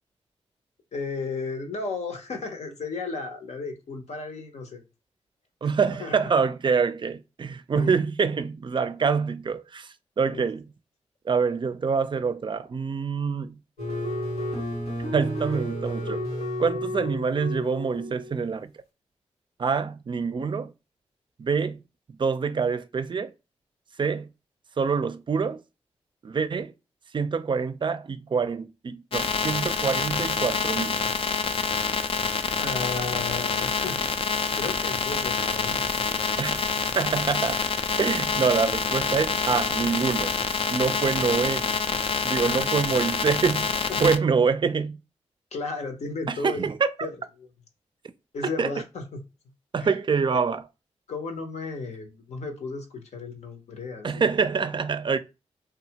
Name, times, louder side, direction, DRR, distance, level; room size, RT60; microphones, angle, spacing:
voice 1, 0.9-4.8 6.0-6.2 7.7-7.9 10.3-10.4 32.6-34.0 34.6-36.3 42.4-42.7 43.9-44.1 45.5-46.7 47.0-47.1 47.4-47.5 48.3-49.2 49.8-49.9 50.3-50.4 51.1-54.2, left 3 dB, 70° left, 0.8 m, -34 dB
voice 2, 5.6-10.7 11.3-13.6 15.1-16.2 16.6-18.7 19.6-20.7 21.4-21.8 22.1-23.3 24.0-24.3 24.8-25.6 26.2-26.7 27.1-31.0 36.4-37.6 38.0-40.3 40.7-41.7 42.2-43.7 44.0-45.0 46.3-47.1 48.6-48.7 49.7-50.6 54.0-55.2, right 5 dB, 40° right, 0.4 m, -26 dB
sound 1, 13.8-18.4, equal, 90° left, 1.3 m, -31 dB
sound 2, 29.1-44.2, left 5 dB, 50° left, 0.4 m, -27 dB
2.7 x 2.3 x 2.8 m
cardioid pair, 45°, 12 cm